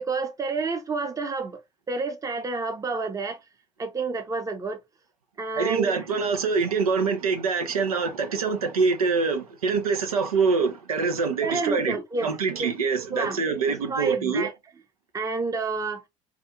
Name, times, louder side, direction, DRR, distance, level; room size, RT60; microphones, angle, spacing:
voice 1, 0.0-1.6 1.9-3.4 3.8-4.8 5.4-6.0 11.4-12.3 12.6-12.7 13.1-13.5 13.9-14.5 15.1-16.0, right 4 dB, 20° right, 0.7 m, -29 dB
voice 2, 5.6-14.5, right 5 dB, 90° right, 0.6 m, -25 dB
2.4 x 2.3 x 2.8 m
hypercardioid pair, 70°, 18 cm